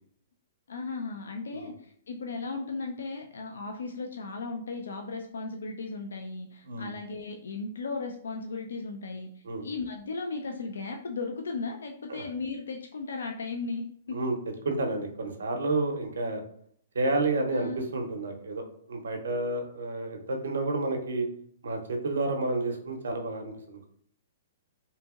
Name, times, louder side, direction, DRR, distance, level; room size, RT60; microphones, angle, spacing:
voice 1, 0.7-1.7 2.1-9.3 9.6-14.2 17.5-17.8, left 3 dB, 85° left, 3 dB, 0.3 m, -36 dB
voice 2, 14.6-16.4 16.9-21.3 21.6-23.9, right 2 dB, 85° right, 4 dB, 0.6 m, -30 dB
2.7 x 2.7 x 2.3 m, 0.64 s
hypercardioid pair, 140°, 0 cm